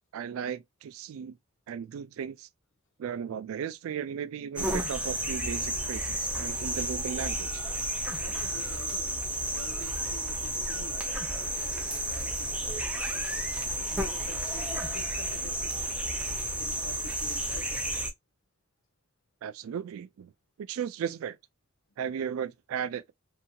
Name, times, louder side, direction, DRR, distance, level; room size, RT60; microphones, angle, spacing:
voice 1, 0.1-1.4 1.7-2.5 3.0-7.6 19.4-20.3 20.6-21.4 22.0-23.1, right 8 dB, 80° right, 0.3 m, -36 dB
sound 1, 4.6-18.1, right 1 dB, 5° right, 0.4 m, -32 dB
voice 2, 8.2-9.1 9.5-13.5 13.9-15.7 16.6-18.0, left 2 dB, 65° left, 0.6 m, -49 dB
2.7 x 2.7 x 2.2 m
head